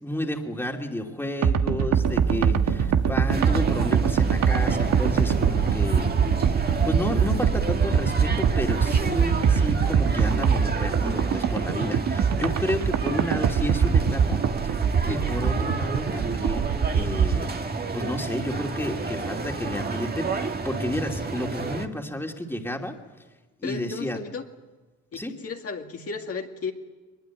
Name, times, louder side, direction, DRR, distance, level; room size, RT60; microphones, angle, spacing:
voice 1, 0.0-6.1 6.4-14.7 15.1-17.5 17.9-23.0 23.6-24.2 25.1-25.3, left 1 dB, 5° left, 2 dB, 2.7 m, -31 dB
sound 1, 1.4-17.4, right 7 dB, 65° right, 1.5 m, -23 dB
sound 2, 1.9-7.2, right 6 dB, 80° right, 2.2 m, -35 dB
sound 3, 3.3-21.9, right 3 dB, 30° right, 2.0 m, -31 dB
voice 2, 23.6-24.4 25.1-26.7, left 5 dB, 50° left, 2 dB, 2.2 m, -34 dB
22.5 x 21.5 x 9.2 m, 1.2 s
cardioid pair, 90°, 30 cm